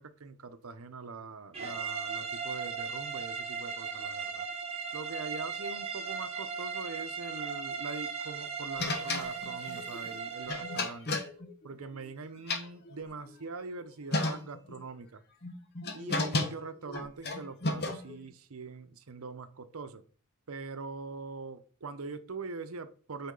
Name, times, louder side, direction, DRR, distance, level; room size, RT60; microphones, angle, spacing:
voice 1, 0.0-4.5 4.9-11.1 11.6-15.2 15.9-20.0 20.5-23.3, right 4 dB, 75° right, 0.7 m, -43 dB
sound 1, 1.5-11.0, right 5 dB, 30° right, 1.4 m, -37 dB
sound 2, 8.8-12.1 12.3-13.4 13.8-13.9 14.1-14.8 15.4-18.3, left 2 dB, 50° left, 1.0 m, -34 dB
8.3 x 4.3 x 3.9 m
head